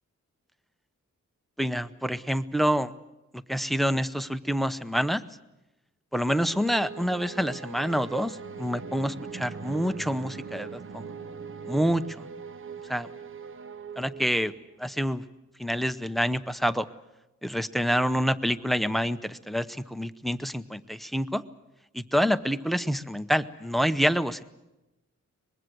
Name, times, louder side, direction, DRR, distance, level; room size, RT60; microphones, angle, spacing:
voice 1, 1.6-2.9 3.3-5.2 6.1-11.0 11.6-12.0 12.9-13.1 14.0-14.5 14.8-15.2 15.6-16.9 17.4-21.4 21.9-24.4, equal, ahead, 14 dB, 0.8 m, -27 dB
sound 1, 6.4-14.8, right 5 dB, 45° right, 0.8 m, -41 dB
24.0 x 21.0 x 7.7 m, 0.98 s
wide cardioid pair, 125°, 30 cm